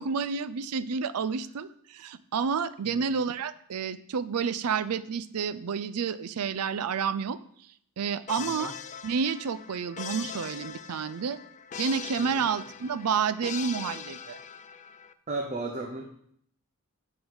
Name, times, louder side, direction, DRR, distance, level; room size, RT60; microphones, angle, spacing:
voice 1, 0.0-7.4 8.0-8.7 9.0-11.4 11.8-14.4, right 6 dB, 85° right, 15 dB, 0.4 m, -30 dB
sound 1, 8.3-15.1, left 8 dB, 35° left, 0.3 m, -41 dB
voice 2, 8.4-8.7 12.2-12.5 15.3-16.0, right 2 dB, 30° right, 1 dB, 0.8 m, -35 dB
11.0 x 4.0 x 4.7 m, 0.67 s
head